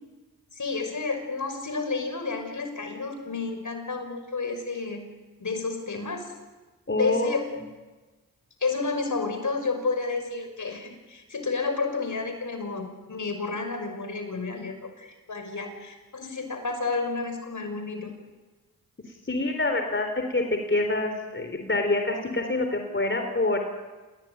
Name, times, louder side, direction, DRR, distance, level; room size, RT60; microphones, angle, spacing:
voice 1, 0.5-5.0 5.4-6.3 7.0-7.5 8.6-18.1, left 4 dB, 55° left, 6 dB, 5.9 m, -31 dB
voice 2, 6.9-7.3 19.3-20.4 20.7-23.6, left 2 dB, 35° left, 5 dB, 3.9 m, -26 dB
28.0 x 17.0 x 9.6 m, 1.2 s
cardioid pair, 45°, 35 cm